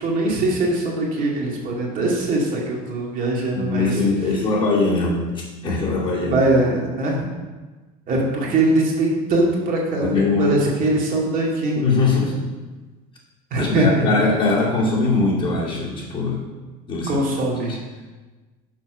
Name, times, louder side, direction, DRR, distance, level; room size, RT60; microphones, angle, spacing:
voice 1, 0.0-4.0 6.2-7.2 8.1-11.8 13.5-14.2 17.1-17.8, right 2 dB, 45° right, -3 dB, 2.3 m, -21 dB
voice 2, 3.5-6.4 7.2-7.3 8.1-8.2 10.0-10.8 11.7-12.4 13.6-16.4 16.9-17.2 17.7-17.8, left 3 dB, 25° left, -5 dB, 2.3 m, -21 dB
6.8 x 5.8 x 5.1 m, 1.3 s
supercardioid pair, 125°, 19 cm